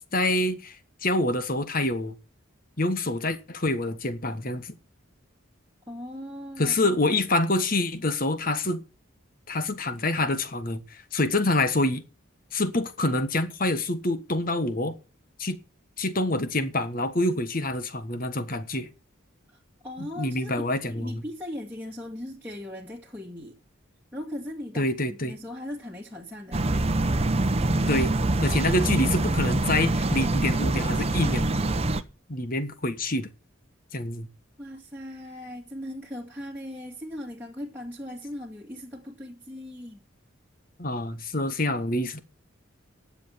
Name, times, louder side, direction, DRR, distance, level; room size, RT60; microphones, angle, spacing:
voice 1, 0.1-0.8 1.0-2.1 2.8-4.7 6.6-8.8 9.5-12.0 12.5-14.9 15.4-15.6 16.0-18.9 20.0-21.2 24.8-25.3 27.9-28.1 28.4-31.5 32.3-33.3 33.9-34.3 40.8-42.2, left 2 dB, 40° left, 1.4 m, -26 dB
voice 2, 5.9-6.8 19.5-23.6 24.1-26.6 34.6-40.0, left 1 dB, 10° right, 2.3 m, -39 dB
sound 1, 26.5-32.0, right 2 dB, 30° right, 0.8 m, -25 dB
10.5 x 7.3 x 8.7 m
head